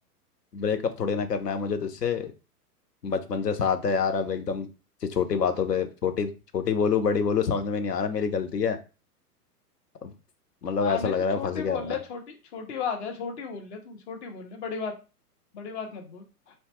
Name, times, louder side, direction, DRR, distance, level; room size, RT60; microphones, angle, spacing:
voice 1, 0.5-2.3 3.0-4.7 5.0-8.8 10.0-10.1 10.6-11.8, left 6 dB, 90° left, 0.6 m, -26 dB
voice 2, 10.8-14.9 15.5-16.5, left 6 dB, 45° left, 0.8 m, -35 dB
2.7 x 2.1 x 3.0 m
figure-of-eight pair, 105°, 47 cm